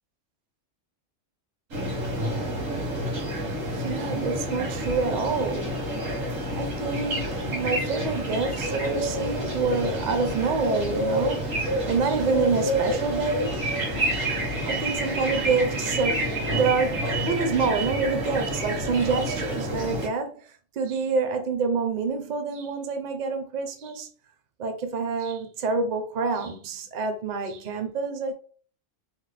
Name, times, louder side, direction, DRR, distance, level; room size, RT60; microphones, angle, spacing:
sound 1, 1.7-20.1, right 1 dB, 85° right, 1.5 m, -28 dB
voice 1, 3.7-6.1 6.5-13.7 14.0-14.2 14.7-24.1 24.6-28.3, right 4 dB, 55° right, 0.5 m, -27 dB
3.3 x 2.1 x 3.2 m
omnidirectional pair, 1.3 m